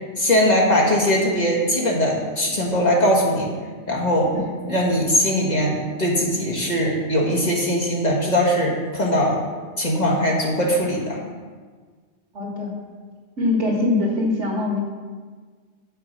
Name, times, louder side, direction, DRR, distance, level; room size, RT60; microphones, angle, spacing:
voice 1, 0.2-3.5 3.9-4.3 4.7-9.4 9.8-11.2, equal, 35° left, -3 dB, 1.5 m, -20 dB
voice 2, 4.3-4.7 12.3-12.7 13.4-14.8, left 2 dB, 80° right, -2 dB, 2.1 m, -23 dB
8.0 x 5.8 x 5.5 m, 1.5 s
omnidirectional pair, 1.2 m